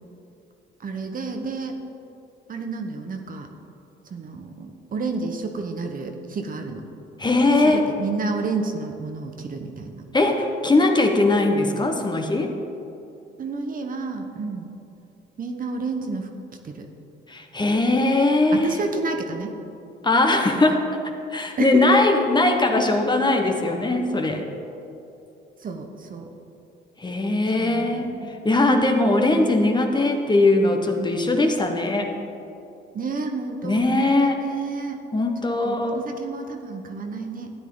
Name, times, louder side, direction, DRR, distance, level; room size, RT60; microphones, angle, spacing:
voice 1, 0.8-1.8 2.5-3.5 4.1-6.8 7.6-10.1 13.4-14.7 15.4-16.3 16.6-16.9 18.5-19.6 21.6-21.8 25.6-26.3 27.5-28.3 32.9-35.0 35.4-37.5, right 4 dB, 45° right, 5 dB, 1.0 m, -30 dB
voice 2, 7.2-7.8 10.1-12.5 17.3-18.8 20.0-20.8 21.3-24.4 27.0-32.1 33.6-34.4 35.1-36.0, left 2 dB, 20° left, 3 dB, 1.1 m, -20 dB
13.0 x 9.2 x 3.9 m, 2.8 s
cardioid pair, 90°, 20 cm